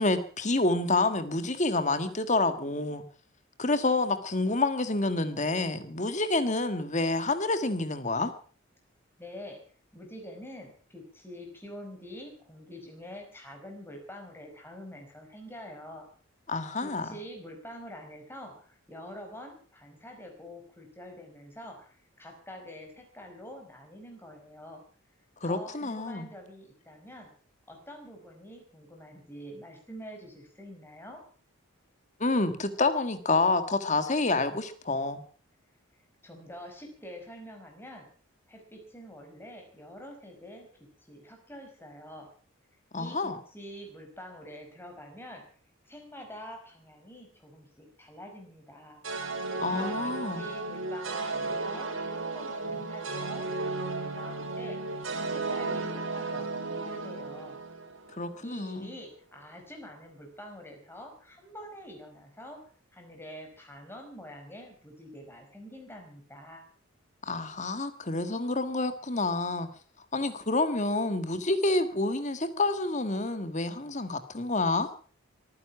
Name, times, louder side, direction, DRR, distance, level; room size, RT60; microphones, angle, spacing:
voice 1, 0.0-3.0 3.6-8.3 16.5-17.1 25.4-26.3 32.2-35.2 42.9-43.4 49.6-50.5 58.1-58.9 67.2-69.7 70.1-74.9, left 2 dB, 35° left, 10 dB, 1.7 m, -28 dB
voice 2, 9.2-9.6 9.9-16.0 16.8-24.8 25.4-27.3 27.7-31.2 36.2-38.1 38.5-40.7 41.1-42.3 42.9-45.4 45.8-49.0 49.7-54.8 55.3-57.6 58.4-62.6 62.9-66.6, equal, 10° left, 2 dB, 5.0 m, -46 dB
sound 1, 49.0-58.4, right 3 dB, 70° right, 4.1 m, -34 dB
23.5 x 10.0 x 5.9 m, 0.43 s
head